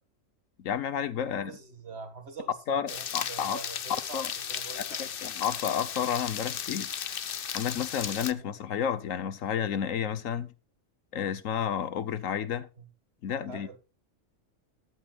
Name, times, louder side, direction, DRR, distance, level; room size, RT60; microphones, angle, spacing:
voice 1, 0.6-1.5 2.7-3.6 4.1-4.3 4.8-6.9 7.5-10.5 11.1-12.7 13.2-13.7, left 8 dB, 85° left, 1.3 m, -31 dB
voice 2, 1.2-5.1 8.3-8.6 12.8-12.9 13.4-13.8, right 4 dB, 55° right, 2.1 m, -45 dB
sound 1, 2.9-8.3, left 8 dB, 50° left, 0.8 m, -35 dB
14.0 x 11.5 x 2.4 m
omnidirectional pair, 1.3 m